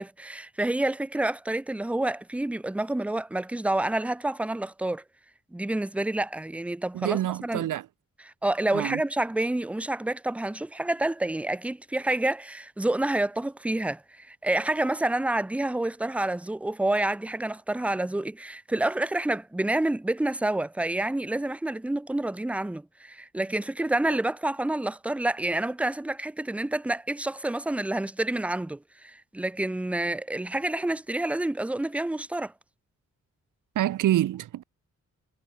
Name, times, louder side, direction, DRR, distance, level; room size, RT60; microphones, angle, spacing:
voice 1, 0.0-5.0 5.5-7.6 8.2-32.5, right 1 dB, 5° right, 0.5 m, -28 dB
voice 2, 6.9-7.9 8.7-9.0 33.8-34.6, right 13 dB, 85° right, 0.6 m, -26 dB
wide cardioid pair, 175°, 30 cm